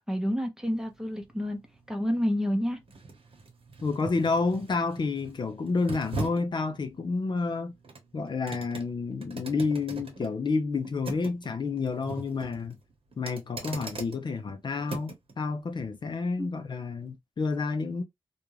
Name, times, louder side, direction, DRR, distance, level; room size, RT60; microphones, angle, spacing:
voice 1, 0.1-1.6 1.9-2.8 16.4-16.5, equal, 5° right, 0.7 m, -29 dB
sound 1, 0.6-15.3 15.8-15.9, right 3 dB, 70° right, 1.0 m, -42 dB
voice 2, 3.8-7.7 8.1-12.8 13.2-18.0, left 4 dB, 50° left, 0.5 m, -29 dB
2.5 x 2.2 x 3.0 m
wide cardioid pair, 115°, 10 cm